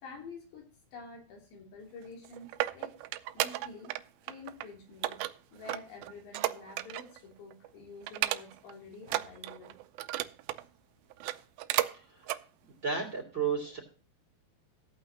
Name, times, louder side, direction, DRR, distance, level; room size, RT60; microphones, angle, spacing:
voice 1, 0.0-2.5 2.7-3.0 3.3-3.9 4.2-9.8, left 4 dB, 85° left, 0 dB, 5.2 m, -48 dB
sound 1, 2.0-4.0 4.3-4.7 5.0-7.2 7.5-7.7 8.1-8.7 9.0-10.6 11.1-11.9 12.2-12.4 12.9-13.0, right 15 dB, 90° right, 2.1 m, -33 dB
voice 2, 12.8-13.8, right 6 dB, 30° right, 1 dB, 2.5 m, -32 dB
15.5 x 8.6 x 2.8 m, 0.38 s
omnidirectional pair, 4.9 m